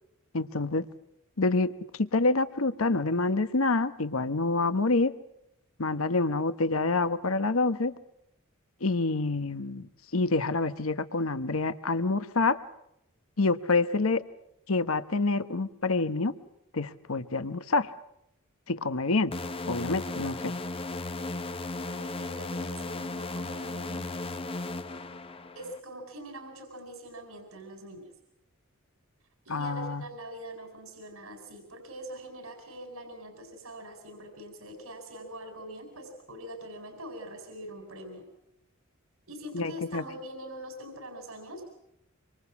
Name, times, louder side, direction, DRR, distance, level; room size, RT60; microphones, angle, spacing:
voice 1, 0.3-0.9 1.4-5.1 5.8-7.9 8.8-12.6 13.4-14.2 14.7-16.3 16.7-17.9 18.7-19.3 19.7-20.5 29.5-30.0 39.5-40.0, left 3 dB, 70° left, 12 dB, 1.1 m, -27 dB
sound 1, 19.3-25.8, left 2 dB, 25° left, 0.9 m, -35 dB
voice 2, 21.9-24.1 25.5-28.1 29.4-38.2 39.3-41.7, right 1 dB, 75° right, 6 dB, 4.4 m, -43 dB
26.0 x 25.0 x 7.1 m, 0.79 s
head